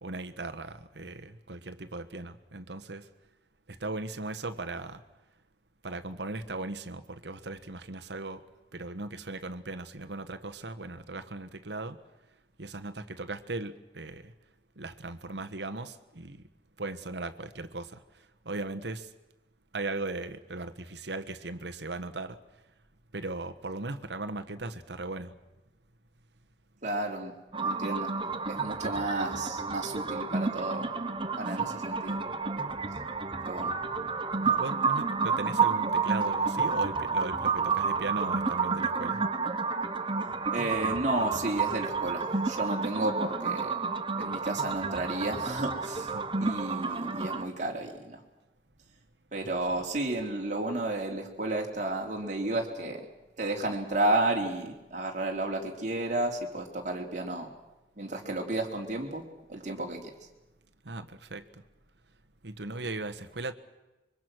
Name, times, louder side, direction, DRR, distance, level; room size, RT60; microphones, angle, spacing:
voice 1, 0.0-3.1 3.7-5.0 5.8-8.4 8.7-12.0 12.6-14.3 14.8-16.4 16.8-18.0 18.4-19.1 19.7-22.4 23.1-25.3 31.5-31.8 34.4-39.2 46.1-46.3 49.5-49.6 60.8-61.6 62.4-63.5, right 2 dB, 75° right, 8 dB, 1.4 m, -38 dB
voice 2, 26.8-27.3 27.6-28.1 28.5-30.9 31.4-32.2 33.5-33.7 40.5-43.8 44.2-46.1 46.4-48.2 49.3-53.1 53.4-57.5 58.0-59.2 59.5-60.1, right 2 dB, 45° right, 0 dB, 3.5 m, -32 dB
sound 1, 27.5-47.4, right 4 dB, 30° right, 1.1 m, -30 dB
25.5 x 23.5 x 6.3 m, 1.0 s
head